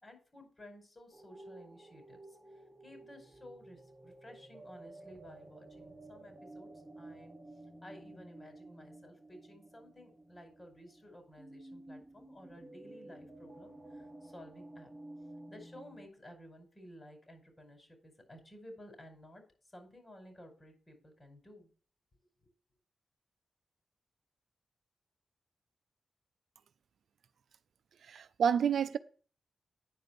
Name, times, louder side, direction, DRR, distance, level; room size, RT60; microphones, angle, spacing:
voice 1, 0.0-2.4 2.8-6.7 7.0-7.4 7.8-14.9 15.5-19.4 19.7-21.7, left 1 dB, 35° left, 5.2 m, -54 dB
sound 1, 1.1-16.1, right 1 dB, 10° right, 2.6 m, -53 dB
voice 2, 28.1-29.0, right 7 dB, 80° right, 0.5 m, -29 dB
9.7 x 5.2 x 6.1 m
supercardioid pair, 45°, 0 cm